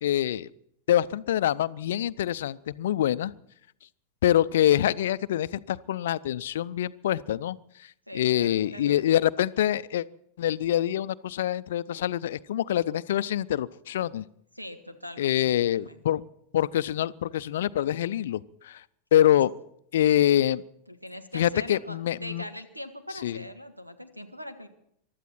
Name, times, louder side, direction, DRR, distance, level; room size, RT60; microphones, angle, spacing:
voice 1, 0.0-0.5 0.9-3.3 4.2-7.6 8.1-10.1 10.4-14.2 15.2-16.2 16.5-18.8 19.1-19.5 19.9-20.6 21.3-22.4 23.2-23.4, left 11 dB, 60° left, 17 dB, 0.5 m, -25 dB
voice 2, 8.1-9.0 14.5-15.4 15.7-16.0 19.2-19.3 20.9-24.7, left 1 dB, 90° right, 10 dB, 1.6 m, -41 dB
23.5 x 12.5 x 4.3 m, 0.72 s
figure-of-eight pair, 90°, 0 cm